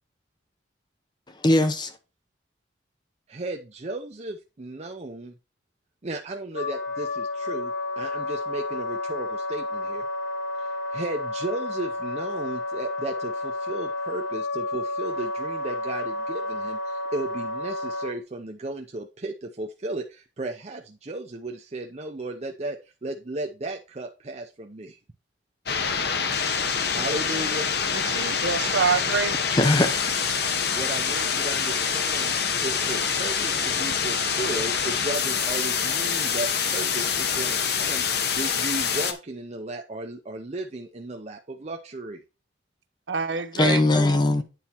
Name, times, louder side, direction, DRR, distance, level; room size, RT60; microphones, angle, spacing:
voice 1, 1.4-1.9 29.5-30.1 43.5-44.4, left 2 dB, 25° left, 0.7 m, -20 dB
voice 2, 3.3-5.3 6.0-10.1 10.6-25.0 26.9-27.7 30.7-32.3 32.6-42.2, right 2 dB, 35° right, 0.6 m, -35 dB
Wind instrument woodwind instrument, 6.5-18.1, left 2 dB, 75° left, 1.9 m, -31 dB
sound 1, 25.7-39.1, left 6 dB, 60° left, 1.0 m, -26 dB
voice 3, 27.9-29.3 43.1-43.8, right 5 dB, 75° right, 0.8 m, -26 dB
9.3 x 4.2 x 4.3 m
head